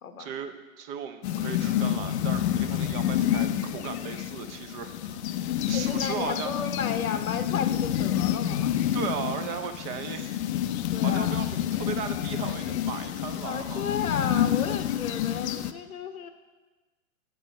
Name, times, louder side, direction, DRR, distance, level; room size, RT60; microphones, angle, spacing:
voice 1, 0.2-5.2 5.7-6.6 8.9-10.4 11.0-14.0, right 7 dB, 30° right, 8 dB, 0.7 m, -36 dB
sound 1, 1.2-15.7, left 11 dB, 55° left, 0.6 m, -28 dB
voice 2, 5.7-8.7 10.9-11.5 13.4-16.3, left 6 dB, 85° left, 8 dB, 1.0 m, -33 dB
7.6 x 7.5 x 5.4 m, 1.2 s
hypercardioid pair, 120°, 41 cm